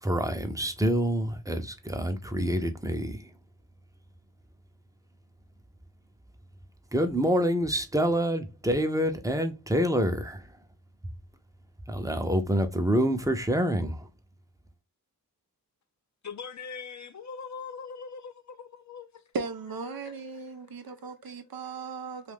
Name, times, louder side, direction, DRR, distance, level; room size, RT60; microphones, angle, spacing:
voice 1, 0.0-3.3 6.9-10.5 11.9-14.1, equal, 10° right, 0.7 m, -27 dB
voice 2, 16.2-19.3 19.8-21.3, left 5 dB, 50° left, 0.5 m, -43 dB
voice 3, 19.3-22.3, right 4 dB, 70° right, 0.6 m, -37 dB
2.5 x 2.5 x 3.4 m
cardioid pair, 40°, 37 cm